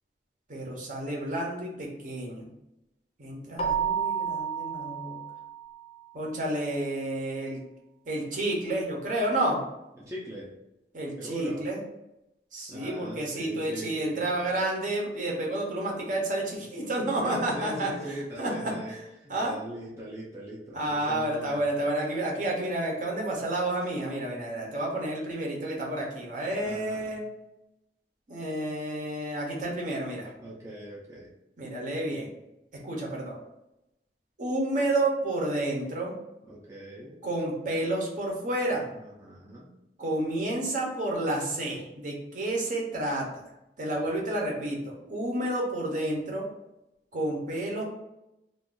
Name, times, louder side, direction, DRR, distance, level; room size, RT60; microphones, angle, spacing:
voice 1, 0.5-2.5 3.2-5.2 6.1-7.6 8.1-9.6 10.9-11.8 12.5-17.9 18.4-18.7 19.3-19.5 20.7-27.2 28.3-30.3 31.6-32.3 32.8-33.4 34.4-36.1 37.2-38.9 40.0-43.2 43.8-46.4 47.1-47.8, right 1 dB, 45° right, -2 dB, 0.8 m, -30 dB
Keyboard (musical), 3.6-6.0, right 7 dB, 35° left, 0.6 m, -31 dB
voice 2, 10.0-10.5 11.2-11.6 12.7-14.6 17.2-21.7 26.6-27.2 30.4-31.3 36.5-37.2 38.9-39.7 43.9-44.2, right 1 dB, 15° right, -7 dB, 0.5 m, -41 dB
2.4 x 2.4 x 3.7 m, 0.91 s
head